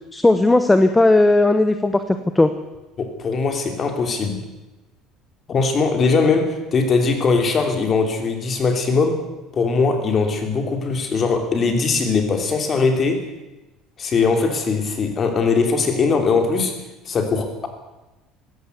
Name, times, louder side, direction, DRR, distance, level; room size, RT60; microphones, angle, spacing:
voice 1, 0.1-2.5, left 2 dB, 5° left, 9 dB, 0.8 m, -16 dB
voice 2, 3.0-4.4 5.5-9.2 9.5-13.3 14.0-16.7 17.0-17.7, left 4 dB, 25° left, 5 dB, 3.1 m, -20 dB
20.0 x 16.5 x 8.2 m, 1.0 s
cardioid pair, 180°, 0 cm